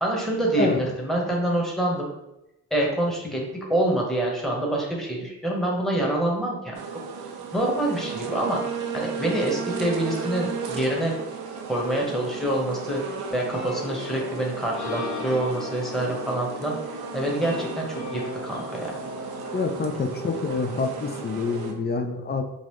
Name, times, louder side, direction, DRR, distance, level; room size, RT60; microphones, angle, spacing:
voice 1, 0.0-2.1 2.7-6.7 7.5-8.6 8.9-11.1 11.7-13.0 13.3-19.0, right 1 dB, ahead, -2 dB, 1.1 m, -26 dB
sound 1, 6.7-21.7, right 5 dB, 80° right, 0.6 m, -35 dB
sound 2, 13.3-19.6, left 2 dB, 55° left, 0.9 m, -36 dB
voice 2, 19.5-22.4, left 4 dB, 25° left, 7 dB, 0.5 m, -27 dB
3.9 x 2.5 x 3.1 m, 0.88 s
supercardioid pair, 55°, 37 cm